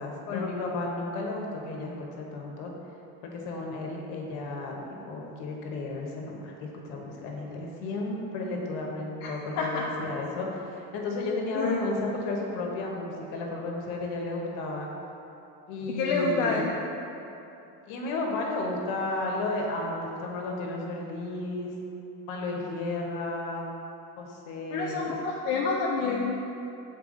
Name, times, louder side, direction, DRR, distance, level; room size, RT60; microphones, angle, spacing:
voice 1, 0.0-2.7 3.2-14.9 15.7-16.7 17.9-21.7 22.3-23.7 24.2-25.1, left 2 dB, 70° left, -1 dB, 1.3 m, -33 dB
voice 2, 9.2-9.8 11.5-11.8 16.0-16.7 24.7-26.4, left 4 dB, 85° left, -3 dB, 0.8 m, -28 dB
7.0 x 4.5 x 3.9 m, 2.9 s
supercardioid pair, 100°, 45 cm